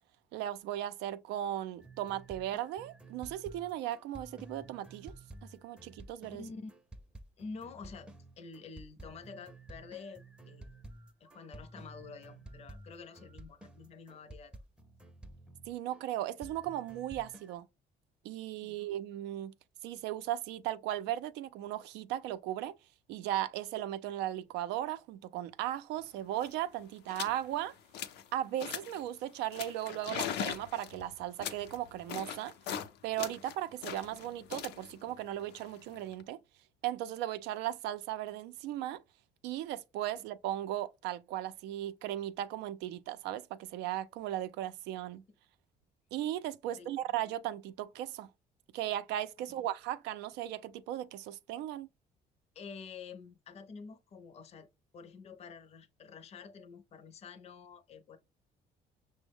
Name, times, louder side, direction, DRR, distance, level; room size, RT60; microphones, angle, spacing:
voice 1, 0.3-5.1 5.5-6.4 15.7-17.7 18.2-19.5 19.8-22.7 23.1-27.7 28.3-32.5 33.0-36.4 36.8-39.0 39.4-45.2 46.1-48.3 48.7-51.9, right 13 dB, 90° right, 0.4 m, -37 dB
sound 1, 1.8-16.0 16.4-17.5, right 2 dB, 5° right, 0.5 m, -52 dB
voice 2, 6.4-6.7 7.4-8.1 8.4-10.7 11.2-14.6 18.6-18.8 46.7-46.9 49.5-49.7 52.5-54.7 54.9-58.2, left 5 dB, 40° left, 0.5 m, -48 dB
sound 2, 26.0-26.1 26.3-26.6 27.1-27.4 27.7-28.3 28.6-29.0 29.5-32.9 33.2-36.2, left 9 dB, 85° left, 0.5 m, -40 dB
6.0 x 2.1 x 3.4 m
cardioid pair, 110°, 17 cm